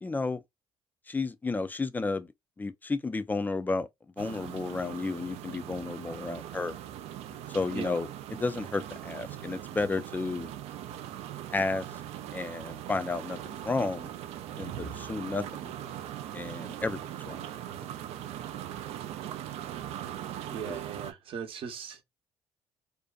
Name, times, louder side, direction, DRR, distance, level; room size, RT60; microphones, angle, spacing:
voice 1, 0.0-0.4 1.1-2.3 2.6-3.9 4.2-6.7 7.5-10.5 11.5-11.9 12.3-14.1 14.6-15.7 16.3-17.4 20.6-20.8, left 3 dB, 15° left, 0.3 m, -32 dB
sound 1, 4.2-21.1, right 11 dB, 80° right, 0.4 m, -40 dB
voice 2, 20.5-22.0, right 7 dB, 60° right, 0.7 m, -38 dB
2.6 x 2.1 x 2.3 m
cardioid pair, 95°, 10 cm